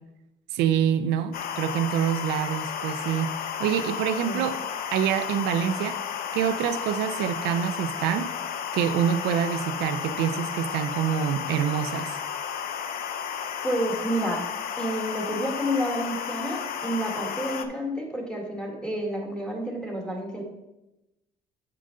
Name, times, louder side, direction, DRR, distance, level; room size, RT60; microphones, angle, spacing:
voice 1, 0.5-3.3 3.6-4.6 4.9-6.0 6.3-8.4 8.7-12.2, right 9 dB, 90° right, 10 dB, 0.5 m, -26 dB
sound 1, 1.3-17.7, left 8 dB, 60° left, 0.6 m, -33 dB
voice 2, 13.6-14.4 14.8-20.4, equal, 5° left, 0 dB, 1.7 m, -29 dB
7.5 x 5.6 x 3.8 m, 0.95 s
cardioid pair, 110°, 17 cm